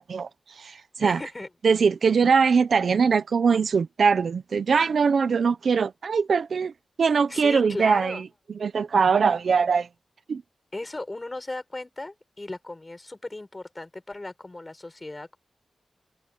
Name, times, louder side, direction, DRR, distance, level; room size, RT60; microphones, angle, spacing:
voice 1, 0.0-1.2 1.6-6.7 7.0-8.2 8.5-9.9 10.3-10.4, right 5 dB, 70° right, 0.9 m, -22 dB
voice 2, 1.0-1.5 7.3-8.3 10.7-15.4, left 2 dB, 20° left, 7.1 m, -36 dB
wide cardioid pair, 140°, 0 cm